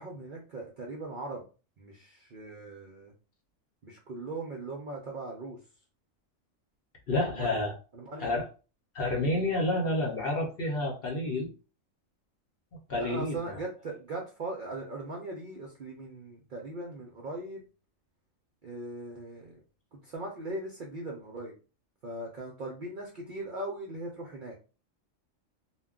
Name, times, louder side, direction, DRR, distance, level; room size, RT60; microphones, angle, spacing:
voice 1, 0.0-1.5 1.8-3.1 3.8-5.6 7.2-7.7 7.9-8.3 9.2-9.4 13.0-17.7 18.6-19.6 19.9-21.5 22.0-24.5, right 2 dB, 60° right, -1 dB, 0.5 m, -39 dB
voice 2, 7.1-7.7 8.2-8.4 8.9-11.5 12.9-13.6, left 1 dB, 50° left, 0 dB, 0.8 m, -29 dB
2.2 x 2.2 x 3.6 m, 0.34 s
omnidirectional pair, 1.4 m